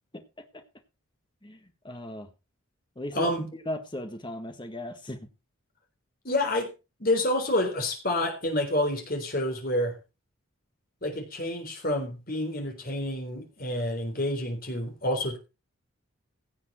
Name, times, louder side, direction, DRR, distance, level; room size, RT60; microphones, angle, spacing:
voice 1, 1.8-2.3 2.9-5.2, left 1 dB, 20° left, 1.5 m, -37 dB
voice 2, 3.1-3.5 6.2-6.7 7.0-9.9 11.0-15.4, left 1 dB, 40° left, 3.7 m, -28 dB
16.5 x 7.5 x 4.3 m
head